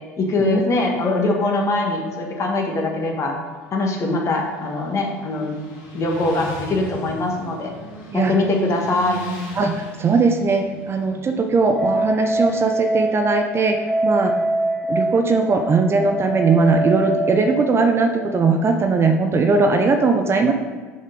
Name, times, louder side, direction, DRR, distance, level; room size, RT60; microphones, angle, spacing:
voice 1, 0.2-3.4 3.7-5.5 5.9-7.7 8.1-9.2, left 2 dB, 35° left, 1 dB, 1.7 m, -22 dB
sound 1, 1.0-4.2 4.4-4.5 11.7-19.7, right 1 dB, 5° left, 1.3 m, -26 dB
Motorcycle, 3.4-13.2, left 1 dB, 60° left, 2.0 m, -38 dB
voice 2, 9.6-14.3 14.9-20.5, right 4 dB, 30° right, 5 dB, 0.8 m, -19 dB
6.5 x 5.6 x 5.2 m, 1.4 s
figure-of-eight pair, 65°, 8 cm